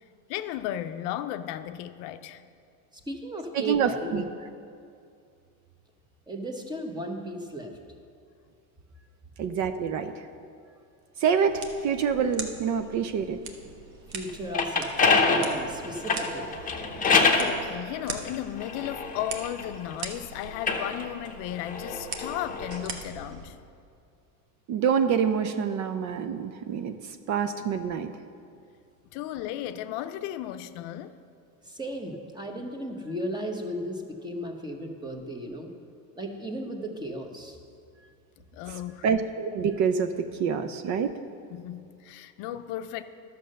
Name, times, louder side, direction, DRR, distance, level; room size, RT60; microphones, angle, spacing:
voice 1, 0.3-2.4 15.2-15.3 16.8-23.6 29.1-31.2 38.5-39.1 41.5-43.0, left 12 dB, 60° left, 10 dB, 0.6 m, -35 dB
voice 2, 2.9-4.2 6.3-7.7 14.1-16.5 31.6-35.7 36.2-37.6, equal, 10° right, 3 dB, 1.0 m, -35 dB
voice 3, 3.5-4.3 9.4-10.1 11.2-13.4 24.7-27.0 27.3-28.1 39.0-41.1, right 7 dB, 45° right, 9 dB, 0.5 m, -26 dB
sound 1, 11.5-23.5, right 5 dB, 85° right, 1.4 m, -42 dB
sound 2, 14.3-17.5 18.3-20.0 20.5-22.8, left 4 dB, 20° left, 0.9 m, -26 dB
11.5 x 6.7 x 6.5 m, 2.4 s
supercardioid pair, 135°, 43 cm